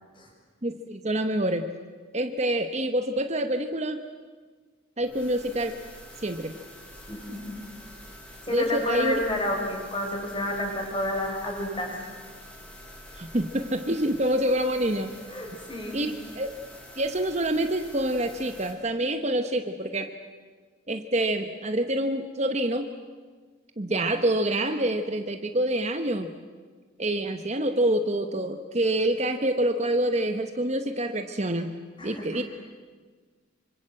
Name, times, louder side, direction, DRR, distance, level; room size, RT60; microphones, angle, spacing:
voice 1, 0.6-1.7 2.1-4.0 5.0-5.7 6.2-6.5 8.5-9.2 13.2-15.2 15.9-16.5 17.0-20.1 20.9-22.9 23.8-26.3 27.0-31.7 32.0-32.4, right 1 dB, 35° right, 7 dB, 1.1 m, -26 dB
sound 1, 5.0-18.7, left 1 dB, 5° left, 4.5 m, -47 dB
voice 2, 7.1-7.5 8.5-11.9 15.3-16.0 32.0-32.4, left 1 dB, 25° left, 0 dB, 6.2 m, -30 dB
26.0 x 25.0 x 7.8 m, 1.5 s
head